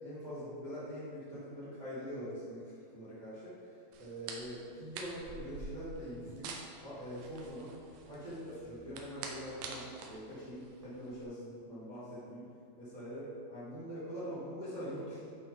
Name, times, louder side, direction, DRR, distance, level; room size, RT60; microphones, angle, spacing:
voice 1, 0.0-3.5 4.0-7.7 8.0-12.4 12.7-15.2, equal, 45° right, -11 dB, 0.9 m, -43 dB
sound 1, 3.9-11.2, right 4 dB, 80° right, 2.0 m, -47 dB
9.3 x 5.5 x 3.8 m, 2.4 s
omnidirectional pair, 4.5 m